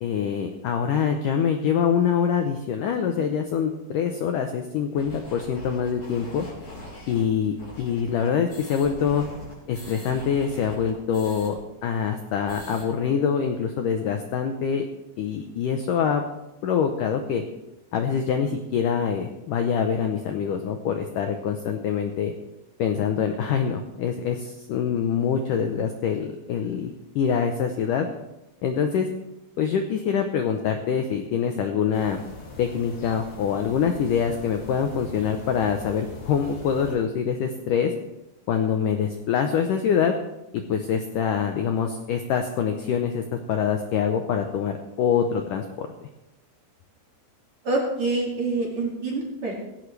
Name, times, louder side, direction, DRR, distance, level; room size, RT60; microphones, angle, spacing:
voice 1, 0.0-6.5 7.1-9.3 9.7-14.9 15.2-16.2 16.6-17.4 17.9-22.3 22.8-28.1 28.6-29.1 29.6-32.2 32.6-37.9 38.5-40.1 40.5-45.9, left 7 dB, 90° left, 5 dB, 1.8 m, -25 dB
sound 1, 4.9-11.5 11.8-11.9 12.2-12.9, equal, 35° left, 6.1 m, -42 dB
sound 2, 31.9-37.0, left 2 dB, 65° left, 5.6 m, -41 dB
voice 2, 47.6-49.5, right 2 dB, 45° right, -2 dB, 3.2 m, -26 dB
17.0 x 16.0 x 3.4 m, 0.95 s
omnidirectional pair, 5.0 m